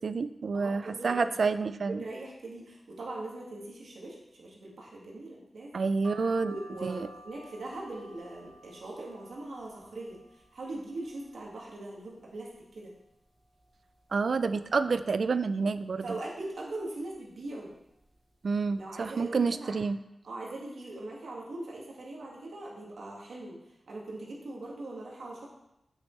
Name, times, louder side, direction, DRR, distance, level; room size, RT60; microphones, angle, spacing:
voice 1, 0.0-2.0 5.7-6.5 6.8-7.1 14.1-16.2 18.4-20.0, right 4 dB, 70° right, 13 dB, 0.3 m, -29 dB
voice 2, 0.5-1.3 1.9-5.9 6.4-12.9 16.0-17.7 18.8-19.7 20.2-23.6 23.9-25.5, right 2 dB, 90° right, -3 dB, 1.9 m, -41 dB
sound 1, 6.0-11.7 12.2-12.9 13.3-13.4 13.6-14.7 15.2-15.6 16.4-16.7 17.5-17.7 18.0-18.2, right 1 dB, 20° right, 1.2 m, -53 dB
8.0 x 6.5 x 3.2 m, 0.87 s
wide cardioid pair, 80°, 0 cm